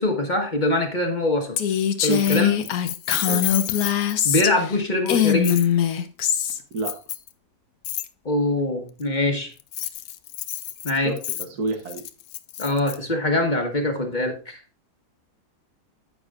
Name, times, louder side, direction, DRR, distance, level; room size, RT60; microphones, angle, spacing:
voice 1, 0.0-1.6 2.0-2.6 4.2-5.6 8.2-9.5 10.8-11.2 12.6-14.6, left 1 dB, 30° left, 3 dB, 1.5 m, -23 dB
Female speech woman speaking, 1.6-4.7 5.1-6.6, left 9 dB, 65° left, 1.2 m, -22 dB
Keys jangling, 2.0-4.4 5.4-5.7 6.8-7.3 7.8-8.1 9.6-13.0, left 14 dB, 90° left, 1.2 m, -31 dB
voice 2, 10.9-12.0, right 3 dB, 70° right, 4 dB, 1.6 m, -29 dB
10.0 x 8.5 x 2.5 m, 0.33 s
omnidirectional pair, 1.7 m